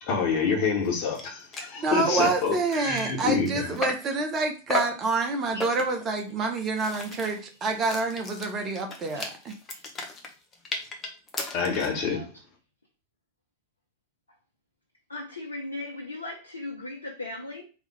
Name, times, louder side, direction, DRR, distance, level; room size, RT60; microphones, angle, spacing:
voice 1, 0.0-3.7 11.5-12.3, left 5 dB, 40° left, 1.8 m, -27 dB
sound 1, 0.9-1.0 1.1-1.3 1.5-1.8 2.2-4.2 4.7-5.1 5.6-6.1 6.5-12.0, left 3 dB, 20° left, 1.1 m, -35 dB
voice 2, 1.8-9.5, right 3 dB, 25° right, 1.1 m, -27 dB
voice 3, 15.1-17.6, left 2 dB, 80° left, 1.0 m, -37 dB
3.8 x 3.2 x 3.4 m
figure-of-eight pair, 90°, 0 cm